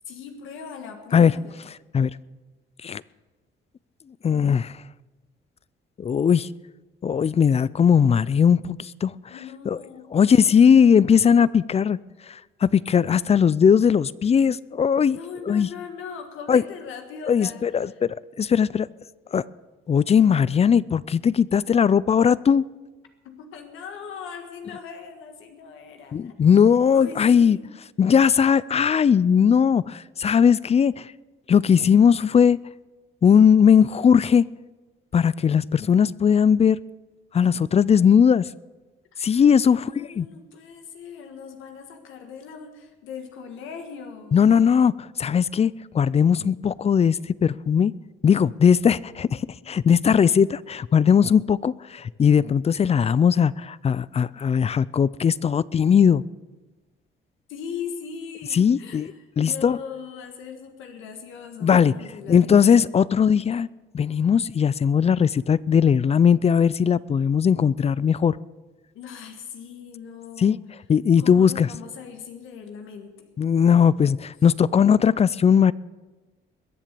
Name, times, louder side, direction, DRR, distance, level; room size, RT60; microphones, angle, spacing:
voice 1, 0.1-1.7 9.3-11.3 15.1-18.0 23.3-26.3 26.9-27.7 39.6-44.4 57.5-62.9 68.9-70.5 71.2-73.3, left 6 dB, 90° left, 4 dB, 1.7 m, -39 dB
voice 2, 4.2-4.7 6.0-6.5 7.0-9.1 9.7-9.8 10.1-12.0 12.6-15.2 15.5-15.7 16.5-16.6 17.3-18.9 19.3-19.4 19.9-22.6 26.1-27.6 28.0-31.0 31.5-32.6 33.2-34.5 35.1-36.8 37.3-38.4 39.2-39.8 40.2-40.3 44.3-44.9 45.2-47.9 48.2-49.4 49.7-56.2 58.5-59.1 59.4-59.8 61.6-61.9 62.3-63.7 63.9-68.4 70.4-70.6 70.9-71.7 73.4-75.7, left 7 dB, 30° left, 21 dB, 0.4 m, -19 dB
21.5 x 7.4 x 6.8 m, 1.2 s
cardioid pair, 90°, 20 cm